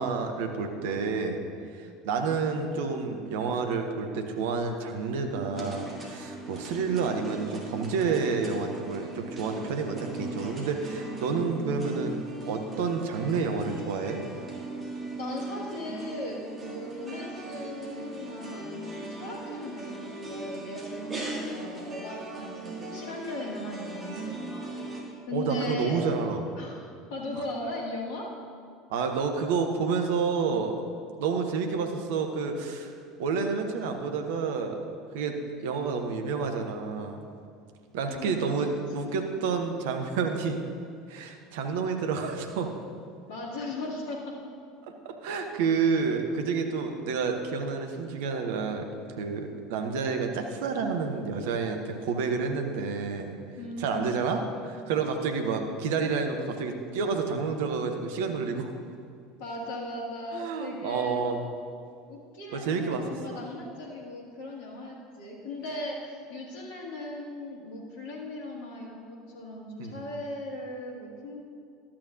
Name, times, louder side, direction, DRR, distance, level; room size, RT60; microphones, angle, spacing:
voice 1, 0.0-1.4 1.7-12.2 12.5-14.2 25.3-26.4 28.9-30.8 31.2-32.9 33.2-34.8 35.1-37.2 37.9-40.6 41.1-42.7 45.0-48.9 49.2-53.3 53.8-58.7 60.3-61.5 62.5-63.0 63.3-63.4 69.8-70.0, right 5 dB, 60° right, 5 dB, 0.7 m, -29 dB
sound 1, 5.5-25.0, right 2 dB, 25° right, 1.9 m, -39 dB
voice 2, 15.2-24.7 25.3-26.1 26.6-28.3 38.1-38.6 38.9-39.3 43.3-44.3 53.6-54.0 59.4-61.2 62.1-71.4, left 1 dB, 60° left, -1 dB, 1.6 m, -38 dB
12.0 x 8.6 x 2.5 m, 2.2 s
figure-of-eight pair, 70°, 0 cm